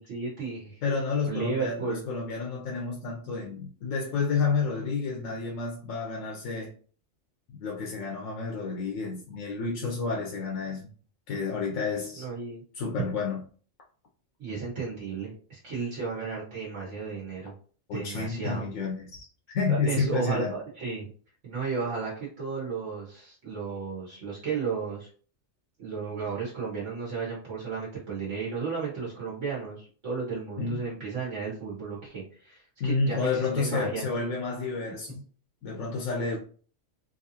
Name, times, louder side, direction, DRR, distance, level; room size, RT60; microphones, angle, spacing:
voice 1, 0.0-0.8 1.3-2.0 12.1-12.6 14.4-17.5 17.9-18.6 19.7-21.1 21.4-25.1 25.8-34.0, right 5 dB, 70° right, 1.5 m, -34 dB
voice 2, 0.8-6.7 7.6-10.9 11.3-12.2 12.7-13.4 17.9-19.3 19.5-20.6 30.6-30.9 32.8-35.2 35.6-36.4, left 4 dB, 85° left, 1.1 m, -30 dB
3.7 x 2.7 x 2.7 m
omnidirectional pair, 1.3 m